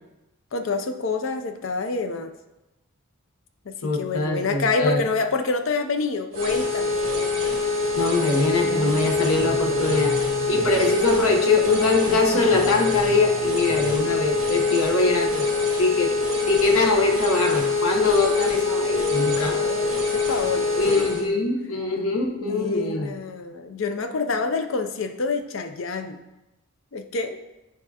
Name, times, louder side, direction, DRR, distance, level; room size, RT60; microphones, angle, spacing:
voice 1, 0.5-2.3 3.7-7.0 19.4-20.7 22.4-26.2 26.9-27.4, left 4 dB, 60° left, 8 dB, 0.5 m, -27 dB
voice 2, 3.8-5.0 8.0-15.5 15.8-16.1 16.5-19.6 20.8-23.1, left 3 dB, 75° left, 2 dB, 0.9 m, -23 dB
sound 1, 6.3-21.2, left 3 dB, 25° right, 2.0 m, -24 dB
sound 2, 8.6-15.0, right 2 dB, 45° right, 0.9 m, -38 dB
9.7 x 3.6 x 2.8 m, 0.98 s
head